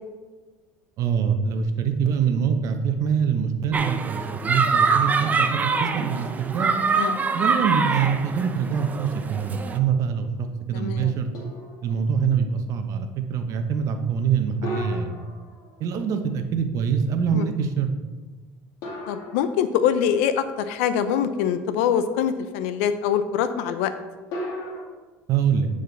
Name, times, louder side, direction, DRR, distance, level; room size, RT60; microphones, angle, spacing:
voice 1, 1.0-6.7 7.3-11.3 11.8-15.1 15.8-17.9 25.3-25.7, right 7 dB, 55° right, 7 dB, 0.9 m, -24 dB
sound 1, 3.7-9.8, right 4 dB, 25° right, 0.6 m, -24 dB
sound 2, 8.0-8.9 9.4-9.5 11.3-12.3 14.6-16.2 18.8-20.1 24.3-24.8, left 1 dB, 65° left, 2.0 m, -36 dB
voice 2, 10.7-11.1 17.3-17.5 19.1-23.9, left 8 dB, 90° left, 11 dB, 0.6 m, -24 dB
9.1 x 5.0 x 4.0 m, 1.3 s
supercardioid pair, 115°, 7 cm